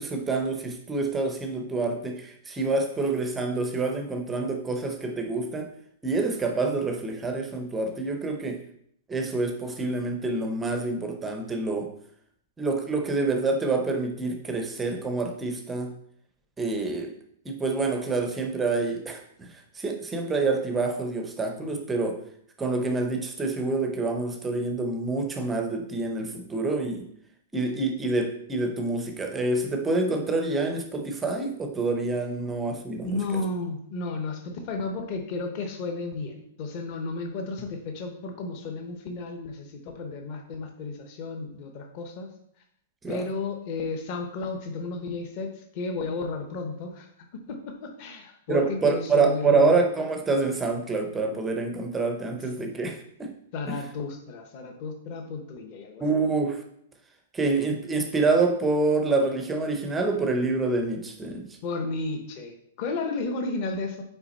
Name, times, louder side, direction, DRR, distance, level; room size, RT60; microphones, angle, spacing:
voice 1, 0.0-5.7 6.0-8.6 9.1-11.9 12.6-15.9 16.6-17.1 17.4-19.5 19.8-22.2 22.6-27.0 27.5-33.4 43.0-43.2 48.5-53.3 53.7-53.8 56.0-56.6 57.3-61.5, right 3 dB, 10° right, 4 dB, 0.6 m, -27 dB
voice 2, 33.0-42.3 43.1-49.8 53.5-56.0 61.6-64.0, left 3 dB, 30° left, 4 dB, 0.9 m, -33 dB
5.8 x 4.5 x 4.1 m, 0.69 s
supercardioid pair, 180°, 0 cm